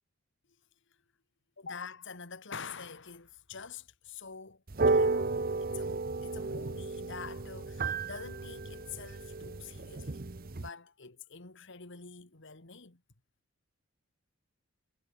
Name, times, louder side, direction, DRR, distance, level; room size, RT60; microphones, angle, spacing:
voice 1, 1.6-5.3 5.6-10.2 10.6-13.0, left 5 dB, 55° left, 1.9 m, -46 dB
sound 1, 4.7-10.7, right 3 dB, 45° right, 0.8 m, -32 dB
head